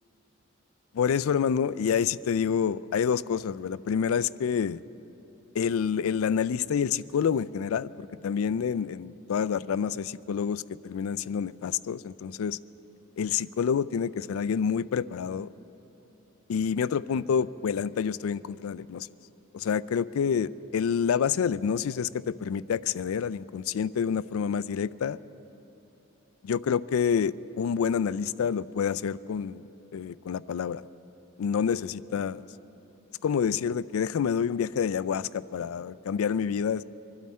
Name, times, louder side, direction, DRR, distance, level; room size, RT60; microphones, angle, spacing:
voice 1, 0.9-4.8 5.5-12.6 13.2-15.5 16.5-19.1 19.5-25.2 26.4-29.6 29.9-30.8 31.4-32.4 33.2-36.8, left 7 dB, 85° left, 18 dB, 0.4 m, -28 dB
24.5 x 12.0 x 4.3 m, 3.0 s
head